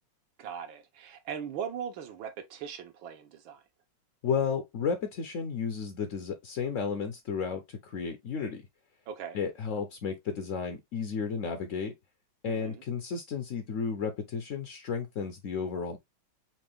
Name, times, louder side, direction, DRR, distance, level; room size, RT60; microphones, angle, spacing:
voice 1, 0.4-3.6 9.1-9.4 12.5-12.8, right 8 dB, 70° right, 1.7 m, -39 dB
voice 2, 4.2-8.6 9.3-11.9 12.4-16.0, left 6 dB, 65° left, 0.8 m, -33 dB
5.8 x 2.6 x 3.4 m
omnidirectional pair, 2.3 m